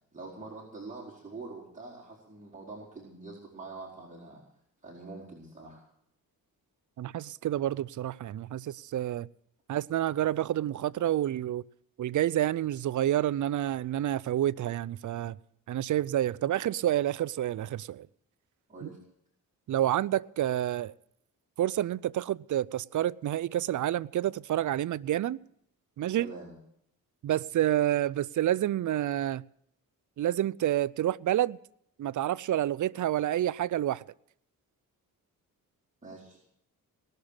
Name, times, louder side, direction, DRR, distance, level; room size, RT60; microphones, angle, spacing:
voice 1, 0.1-4.4 4.8-5.8 18.7-19.0 26.2-26.5 36.0-36.4, right 3 dB, 20° right, 4.5 m, -45 dB
voice 2, 7.0-9.3 9.7-11.6 12.0-15.4 15.7-18.1 18.8-18.9 19.7-20.9 21.6-25.4 26.0-26.3 27.2-29.4 30.2-31.6 32.0-34.0, right 12 dB, 55° right, 0.5 m, -29 dB
19.0 x 6.7 x 8.8 m
cardioid pair, 60°, 36 cm